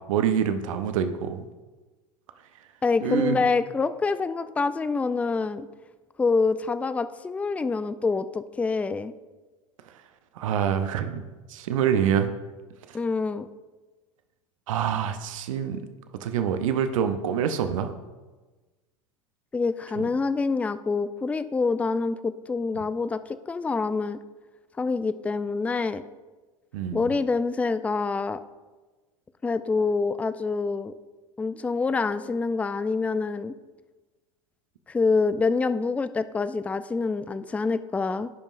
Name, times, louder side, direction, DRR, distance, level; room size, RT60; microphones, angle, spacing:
voice 1, 0.1-1.4 3.0-3.4 10.4-11.2 11.5-12.3 12.9-13.0 14.7-15.8 16.2-17.9 22.8-22.9 26.7-27.1, right 8 dB, 70° right, 8 dB, 0.8 m, -26 dB
voice 2, 2.8-5.7 6.2-9.1 12.9-13.5 19.5-23.2 23.5-24.2 24.8-26.0 26.9-28.4 29.4-30.9 31.4-33.5 34.9-38.3, left 4 dB, 10° left, 13 dB, 0.3 m, -26 dB
15.5 x 5.4 x 2.6 m, 1.2 s
hypercardioid pair, 80°, 18 cm